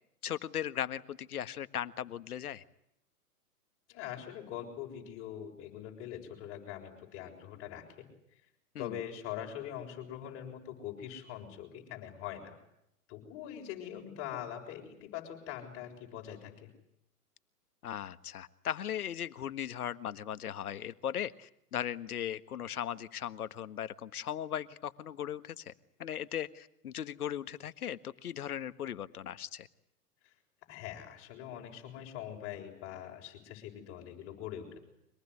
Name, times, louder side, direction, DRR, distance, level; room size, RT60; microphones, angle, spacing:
voice 1, 0.2-2.6 8.7-9.0 17.8-25.7 26.0-29.7, left 10 dB, 65° left, 13 dB, 1.6 m, -38 dB
voice 2, 3.9-8.1 8.8-12.6 13.1-16.7 30.7-34.8, left 10 dB, 30° left, 2 dB, 6.9 m, -43 dB
25.0 x 19.5 x 9.8 m, 0.77 s
hypercardioid pair, 140°, 47 cm